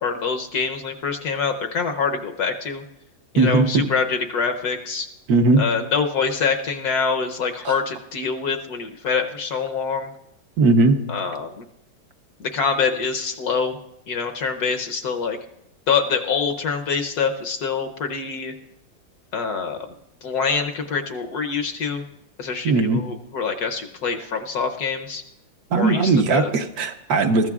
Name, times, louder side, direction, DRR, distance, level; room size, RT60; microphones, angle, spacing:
voice 1, 0.0-2.8 3.3-5.1 5.5-10.1 11.1-11.6 12.4-13.8 14.1-15.4 15.9-18.5 19.3-19.8 20.2-22.0 22.4-25.2 25.7-26.5, left 5 dB, 60° left, 5 dB, 1.2 m, -25 dB
voice 2, 3.4-3.8 5.3-5.7 7.6-7.7 10.6-11.0 22.6-23.0 25.7-27.5, right 3 dB, 60° right, 7 dB, 1.2 m, -18 dB
21.5 x 14.0 x 2.4 m, 0.85 s
omnidirectional pair, 2.0 m